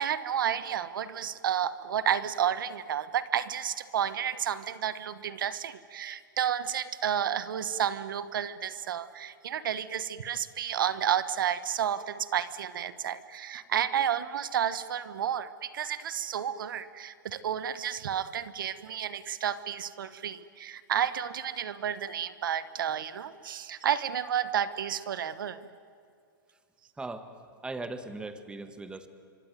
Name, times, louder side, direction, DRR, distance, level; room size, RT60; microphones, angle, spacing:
voice 1, 0.0-25.7, right 9 dB, 75° right, 14 dB, 1.3 m, -31 dB
voice 2, 27.0-27.3 27.6-29.1, right 2 dB, 10° right, 9 dB, 1.7 m, -38 dB
26.0 x 25.0 x 9.4 m, 2.3 s
hypercardioid pair, 130°, 11 cm